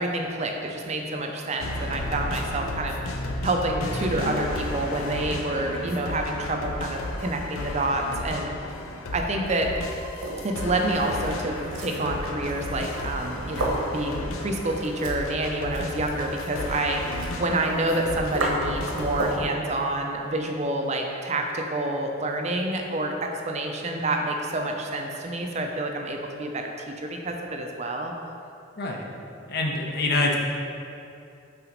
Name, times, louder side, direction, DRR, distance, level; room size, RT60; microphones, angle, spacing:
voice 1, 0.0-8.5 9.1-9.7 10.4-28.1, right 2 dB, 35° right, 2 dB, 0.5 m, -28 dB
sound 1, 1.6-19.4, left 1 dB, 90° left, 0.5 m, -33 dB
sound 2, 9.3-19.5, right 2 dB, 75° right, 1.0 m, -34 dB
voice 2, 28.8-29.1 29.5-30.4, left 2 dB, 50° left, 0 dB, 0.7 m, -25 dB
5.8 x 3.9 x 5.1 m, 2.6 s
head